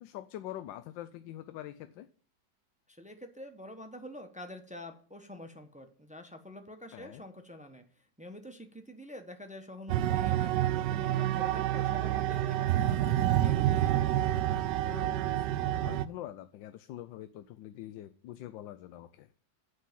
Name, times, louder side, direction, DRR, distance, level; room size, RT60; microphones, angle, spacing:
voice 1, 0.0-2.1 6.9-7.2 14.8-19.3, left 13 dB, 90° left, 11 dB, 1.3 m, -44 dB
voice 2, 2.9-7.8 8.2-14.0, left 1 dB, 5° right, 6 dB, 0.5 m, -47 dB
sound 1, 9.9-16.1, right 13 dB, 75° right, 1.2 m, -28 dB
8.2 x 5.6 x 7.3 m, 0.44 s
omnidirectional pair, 2.0 m